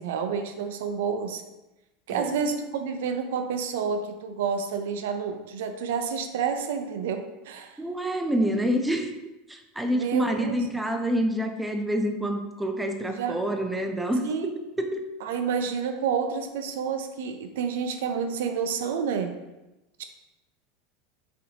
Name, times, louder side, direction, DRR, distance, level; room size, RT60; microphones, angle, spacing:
voice 1, 0.0-1.4 2.1-7.8 9.9-10.6 13.1-13.4 14.2-14.5 15.2-19.3 20.0-20.1, right 6 dB, 80° right, 7 dB, 0.4 m, -29 dB
voice 2, 7.8-14.5 14.8-15.0, right 1 dB, 5° right, 4 dB, 0.4 m, -27 dB
4.1 x 2.7 x 2.8 m, 0.99 s
supercardioid pair, 130°, 0 cm